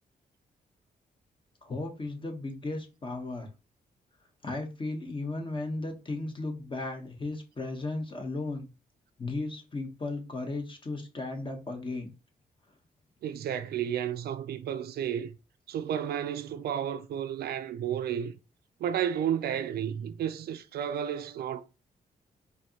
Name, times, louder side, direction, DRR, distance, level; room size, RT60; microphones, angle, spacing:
voice 1, 1.6-3.5 4.4-8.7 9.2-12.1, left 2 dB, 30° left, 1.0 m, -35 dB
voice 2, 13.2-15.3 15.7-18.3 18.8-21.6, right 9 dB, 75° right, 0.4 m, -32 dB
4.4 x 2.7 x 2.8 m
cardioid pair, 70°, 16 cm